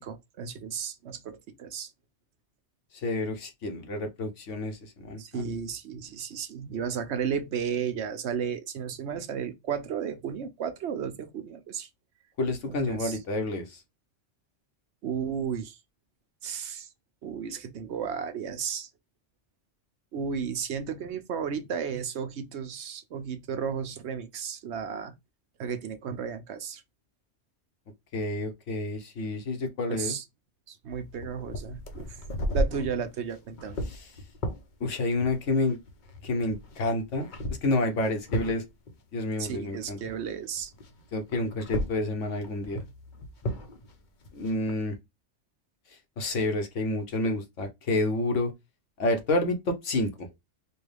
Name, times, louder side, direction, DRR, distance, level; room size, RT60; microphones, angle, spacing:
voice 1, 0.0-1.9 5.2-11.9 12.7-13.2 15.0-15.8 16.4-16.9 17.2-18.9 20.1-25.1 25.6-26.8 29.9-30.2 30.7-32.2 32.5-33.8 39.4-40.7, right 7 dB, 70° right, 0.9 m, -33 dB
voice 2, 2.9-5.4 12.4-13.8 28.1-30.2 33.9-34.1 34.8-35.8 36.2-37.3 37.6-38.6 39.1-40.0 41.1-42.8 44.3-44.9 46.2-48.5 49.0-50.3, left 2 dB, 85° left, 1.3 m, -29 dB
sound 1, 31.1-40.3 40.5-44.8, equal, 45° left, 0.8 m, -36 dB
4.5 x 2.3 x 3.3 m
omnidirectional pair, 1.2 m